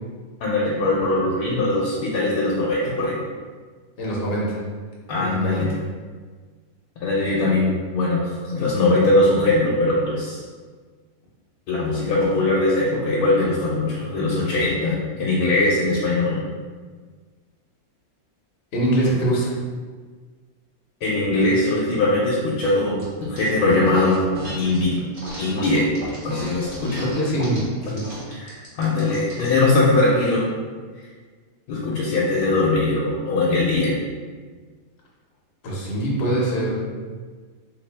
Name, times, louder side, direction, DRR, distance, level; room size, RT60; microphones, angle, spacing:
voice 1, 0.4-3.2 5.1-5.7 7.0-10.4 11.7-16.4 21.0-24.2 24.5-25.0 25.4-25.9 26.2-27.1 28.3-30.4 31.7-34.0, left 2 dB, 85° left, -6 dB, 1.1 m, -21 dB
voice 2, 4.0-4.6 5.1-5.8 18.7-19.5 27.0-28.1 35.6-36.8, right 1 dB, 50° left, -5 dB, 0.9 m, -23 dB
sound 1, 23.0-23.5 23.9-24.8 25.1-29.6, equal, 30° right, 0.9 m, -36 dB
3.4 x 2.6 x 3.3 m, 1.5 s
omnidirectional pair, 1.6 m